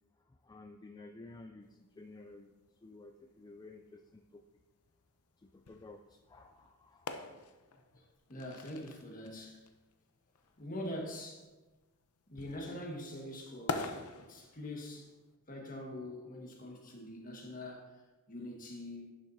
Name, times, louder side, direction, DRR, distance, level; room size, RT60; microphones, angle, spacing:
voice 1, 0.3-2.5 2.8-4.4 5.4-7.1, left 2 dB, 20° left, 5 dB, 0.3 m, -53 dB
sound 1, 1.6-15.3, left 4 dB, 75° left, 0.7 m, -47 dB
voice 2, 8.3-9.6 10.6-11.5 12.3-15.1 15.5-17.9 18.3-19.1, left 1 dB, 40° left, 0 dB, 1.5 m, -44 dB
11.0 x 6.9 x 2.7 m, 1.2 s
head